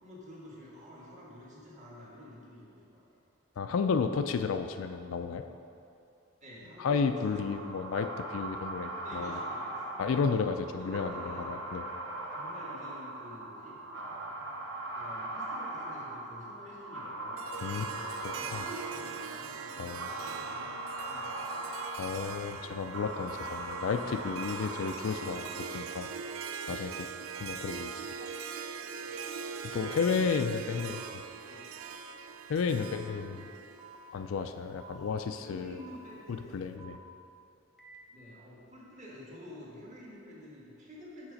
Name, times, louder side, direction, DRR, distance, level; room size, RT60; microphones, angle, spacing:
voice 1, 0.0-3.0 6.4-7.7 9.0-10.4 10.8-11.5 12.3-14.4 14.9-17.4 17.9-20.8 21.0-21.7 29.1-29.2 30.0-31.1 31.5-31.7 32.8-33.4 34.9-36.7 38.1-41.3, left 1 dB, 35° right, -5 dB, 1.4 m, -50 dB
voice 2, 3.6-5.4 6.8-9.4 10.0-11.8 17.6-17.9 18.5-18.6 19.8-20.1 22.0-26.1 26.7-27.1 27.4-27.9 28.2-28.3 29.7-31.0 32.5-33.4 34.1-35.8 36.5-37.0, left 5 dB, 75° left, 8 dB, 0.4 m, -32 dB
sound 1, 7.1-26.0, right 2 dB, 60° right, 0.8 m, -40 dB
Harp, 17.4-34.6, right 6 dB, 80° right, 0.4 m, -42 dB
sound 2, 29.8-30.0 30.8-31.0 31.8-32.0 32.8-33.0 33.8-34.0 34.8-35.0 35.8-36.0 36.8-37.0 37.8-38.0, right 7 dB, 5° right, 0.7 m, -51 dB
7.3 x 4.2 x 5.1 m, 2.6 s
head